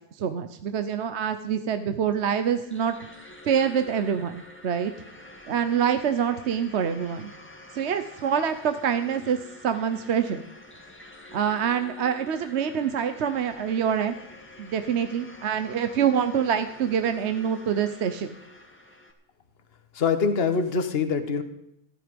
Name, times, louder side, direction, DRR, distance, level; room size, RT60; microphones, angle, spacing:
voice 1, 0.2-2.9 3.5-4.9 5.5-7.3 7.7-9.4 9.6-10.4 11.3-14.1 14.6-18.3, right 8 dB, 55° right, 9 dB, 0.9 m, -25 dB
sound 1, 2.1-19.1, left 1 dB, 10° left, 1.6 m, -48 dB
voice 2, 19.9-21.4, left 5 dB, 45° left, 9 dB, 1.4 m, -24 dB
14.5 x 12.5 x 5.2 m, 0.81 s
omnidirectional pair, 1.6 m